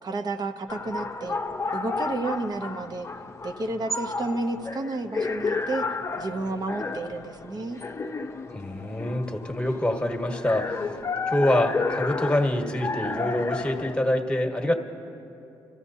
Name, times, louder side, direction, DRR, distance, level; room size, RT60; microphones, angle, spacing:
voice 1, 0.0-1.4 1.7-3.1 3.4-5.8 6.2-7.8, right 2 dB, 45° right, 7 dB, 0.9 m, -31 dB
sound 1, 0.7-14.0, left 3 dB, 30° left, 0.7 m, -32 dB
voice 2, 8.5-11.0 11.3-14.7, left 1 dB, 10° left, 3 dB, 1.4 m, -25 dB
26.5 x 14.5 x 2.7 m, 2.8 s
cardioid pair, 75°, 10 cm